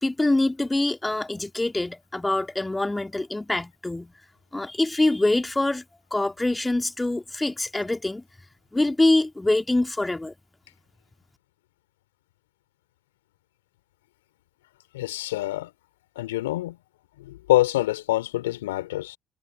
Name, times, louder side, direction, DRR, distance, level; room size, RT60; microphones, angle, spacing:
voice 1, 0.0-4.1 4.5-5.8 6.1-8.2 8.7-10.3, left 2 dB, 15° left, 2.6 m, -24 dB
voice 2, 14.9-15.7 16.1-16.8 17.2-19.2, left 16 dB, 80° left, 3.2 m, -25 dB
figure-of-eight pair, 50°, 0 cm